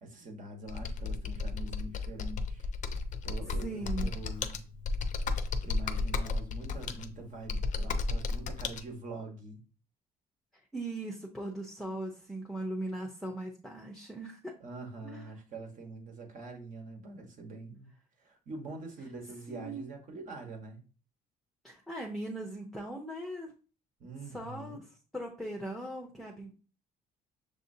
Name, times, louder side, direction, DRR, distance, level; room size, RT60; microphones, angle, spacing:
voice 1, 0.0-2.7 3.2-4.6 5.6-9.6 14.6-17.9 18.2-20.8 24.0-24.8, right 3 dB, 50° right, 1.3 m, -44 dB
Computer keyboard, 0.7-8.8, left 3 dB, 45° left, 0.5 m, -34 dB
voice 2, 3.6-4.1 10.7-14.5 15.0-15.3 19.5-19.9 21.6-23.5 24.3-24.8 25.1-26.5, right 1 dB, ahead, 0.7 m, -39 dB
6.5 x 2.7 x 2.7 m
cardioid pair, 110°, 17 cm